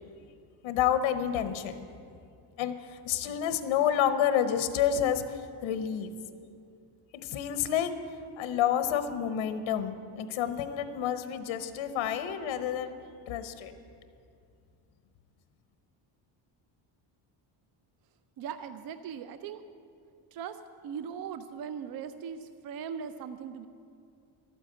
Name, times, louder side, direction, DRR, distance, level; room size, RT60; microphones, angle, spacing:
voice 1, 0.6-1.8 2.6-2.7 3.1-5.2 5.6-6.1 7.2-7.9 8.4-12.9 13.3-13.7, left 9 dB, 70° left, 10 dB, 1.0 m, -29 dB
voice 2, 18.4-19.6 20.3-20.6 20.8-23.7, right 7 dB, 50° right, 11 dB, 0.5 m, -39 dB
12.5 x 9.2 x 7.6 m, 2.4 s
cardioid pair, 165°, 48 cm